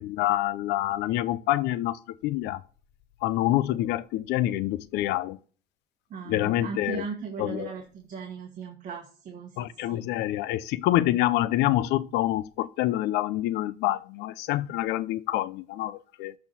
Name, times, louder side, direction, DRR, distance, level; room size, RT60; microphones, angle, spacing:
voice 1, 0.0-2.6 3.2-5.4 6.3-7.1 7.4-7.7 9.6-16.3, left 15 dB, 90° left, 0.5 m, -27 dB
voice 2, 6.1-10.0, right 5 dB, 50° right, 1.4 m, -38 dB
12.0 x 4.4 x 4.1 m
cardioid pair, 110°, 17 cm